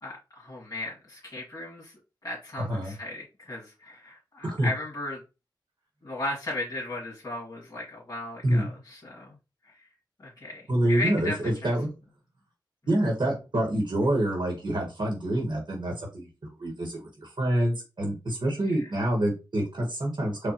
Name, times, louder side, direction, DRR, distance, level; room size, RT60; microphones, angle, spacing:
voice 1, 0.0-1.9 2.2-5.2 6.0-9.3 9.7-9.8 10.2-11.4 11.6-11.7, left 2 dB, 45° left, -5 dB, 1.8 m, -36 dB
voice 2, 2.6-2.9 4.4-4.7 8.4-8.7 10.7-11.9 12.9-16.3 16.6-20.5, right 1 dB, 70° right, 0 dB, 1.2 m, -27 dB
4.6 x 2.4 x 2.8 m, 0.28 s
wide cardioid pair, 70°, 8 cm